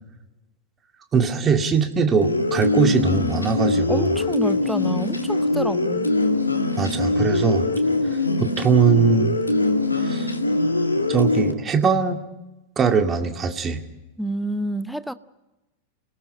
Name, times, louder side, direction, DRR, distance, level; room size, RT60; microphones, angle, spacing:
voice 1, 1.1-4.1 6.8-7.7 8.4-9.3 9.9-10.3 11.1-12.2 12.8-13.8, right 6 dB, 25° right, 5 dB, 2.2 m, -21 dB
sound 1, 2.2-11.5, left 2 dB, 80° left, 2.1 m, -22 dB
voice 2, 3.9-6.1 14.2-15.1, equal, ahead, 14 dB, 0.8 m, -28 dB
29.0 x 19.0 x 5.3 m, 1.0 s
figure-of-eight pair, 90°, 0 cm